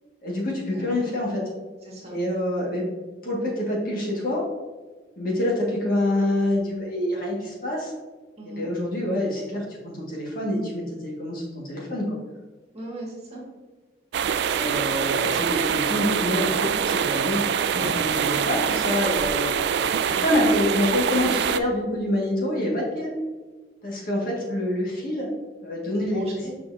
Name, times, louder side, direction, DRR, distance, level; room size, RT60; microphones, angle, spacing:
voice 1, 0.2-1.5 2.1-2.9 3.2-4.5 5.2-7.9 8.4-12.2 14.5-17.5 17.7-19.5 20.1-23.2 23.8-25.3 25.6-26.2, left 1 dB, 50° left, -3 dB, 1.8 m, -26 dB
voice 2, 1.8-2.2 8.4-8.7 12.7-13.4 20.1-20.4 26.0-26.5, right 1 dB, 35° right, -3 dB, 1.8 m, -37 dB
sound 1, 14.1-21.6, right 7 dB, 65° right, 0.3 m, -24 dB
6.6 x 5.5 x 2.7 m, 1.3 s
head